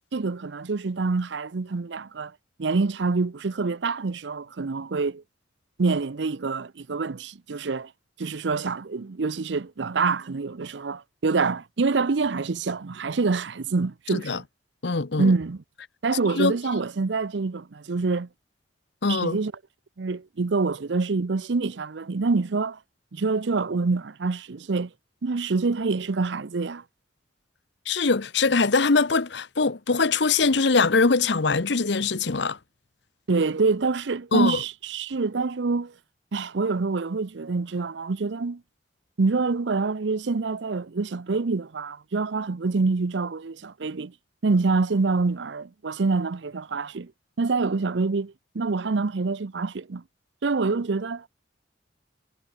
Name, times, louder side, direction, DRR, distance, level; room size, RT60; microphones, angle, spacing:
voice 1, 0.1-2.3 2.6-5.2 5.8-7.9 8.2-14.4 15.2-15.6 16.0-18.3 19.1-19.5 20.0-22.8 23.1-24.9 25.2-26.8 33.3-35.9 36.3-38.6 39.2-44.1 44.4-47.1 47.4-50.0 50.4-51.3, right 4 dB, 70° right, 0.6 m, -26 dB
voice 2, 14.8-15.3 16.4-16.5 19.0-19.4 27.9-32.6 34.3-34.6, left 4 dB, 65° left, 0.9 m, -22 dB
head